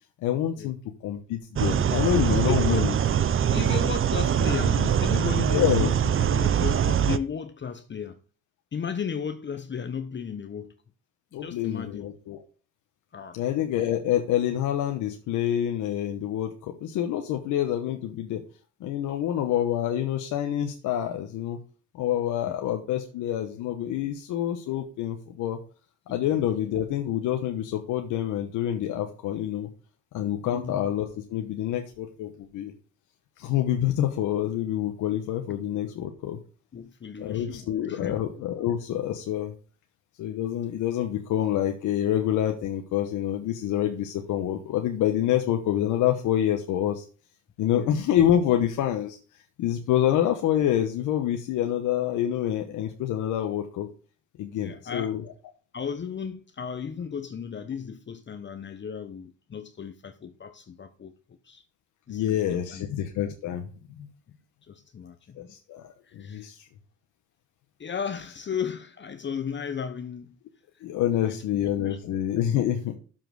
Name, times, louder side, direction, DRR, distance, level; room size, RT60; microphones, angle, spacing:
voice 1, 0.2-0.8 1.0-2.9 5.5-5.9 11.3-12.4 13.3-18.4 18.8-21.6 21.9-25.6 26.1-29.7 30.1-32.7 33.4-36.4 37.2-39.5 40.2-47.0 47.6-49.2 49.6-53.9 54.4-55.2 62.1-63.7 64.0-64.1 65.4-66.6 70.8-73.0, left 11 dB, 90° left, 1.1 m, -27 dB
sound 1, 1.6-7.2, right 9 dB, 45° right, 0.7 m, -23 dB
voice 2, 2.3-2.9 3.5-8.2 8.7-10.7 11.3-12.1 13.1-13.4 22.5-22.6 26.1-26.4 30.4-30.9 36.7-38.2 47.7-47.9 54.6-55.1 55.7-61.1 61.4-61.6 62.1-62.8 64.6-65.5 66.0-66.5 67.8-70.4 71.2-72.1 72.5-72.7, left 7 dB, 40° left, 0.9 m, -35 dB
7.3 x 5.8 x 6.4 m
cardioid pair, 90°, 30 cm